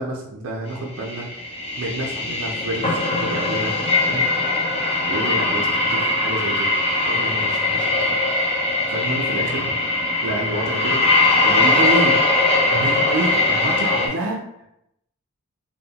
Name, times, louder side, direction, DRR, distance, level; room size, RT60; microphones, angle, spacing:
voice 1, 0.0-3.7 4.1-4.3 5.0-6.7 7.1-8.2 8.9-9.7 10.2-11.1 11.4-12.2 12.7-14.4, right 1 dB, 70° right, -2 dB, 0.4 m, -28 dB
sound 1, 0.9-14.1, left 2 dB, 25° left, 0.4 m, -21 dB
3.0 x 2.0 x 2.8 m, 0.81 s
head